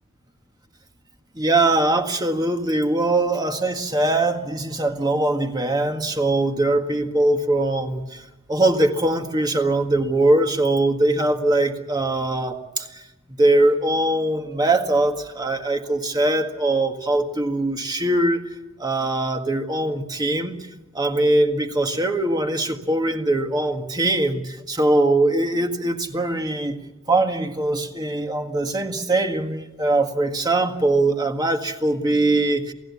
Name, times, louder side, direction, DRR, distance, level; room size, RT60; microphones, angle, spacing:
voice 1, 1.4-8.0 8.5-12.9 13.4-18.4 18.8-20.6 21.0-26.8 27.1-32.7, right 2 dB, 20° right, 5 dB, 1.7 m, -21 dB
28.5 x 16.0 x 8.5 m, 1.0 s
head